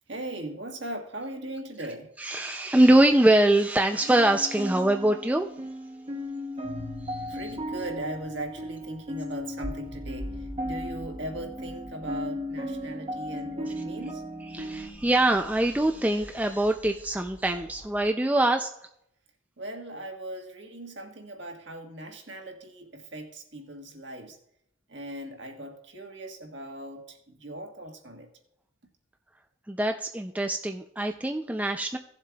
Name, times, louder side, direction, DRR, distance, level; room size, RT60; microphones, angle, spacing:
voice 1, 0.1-2.1 7.3-14.2 19.6-24.4 24.9-28.3, right 1 dB, 60° right, 2 dB, 1.5 m, -39 dB
voice 2, 2.2-5.5 7.0-7.5 14.5-18.7 29.7-32.0, right 1 dB, 5° right, 4 dB, 0.3 m, -23 dB
sound 1, 4.0-14.9, equal, 30° right, 0.8 m, -36 dB
sound 2, 6.6-18.1, equal, 20° left, 1.1 m, -45 dB
17.0 x 7.4 x 2.3 m, 0.75 s
head